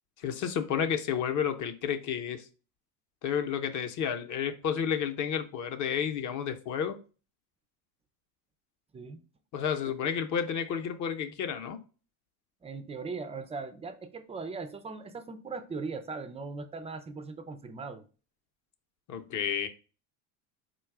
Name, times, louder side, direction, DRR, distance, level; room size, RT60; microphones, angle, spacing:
voice 1, 0.2-2.4 3.2-7.0 9.5-11.8 19.1-19.7, left 8 dB, 40° left, 0.7 m, -31 dB
voice 2, 12.6-18.0, right 4 dB, 15° right, 0.3 m, -39 dB
4.7 x 2.3 x 4.5 m
supercardioid pair, 115°, 45 cm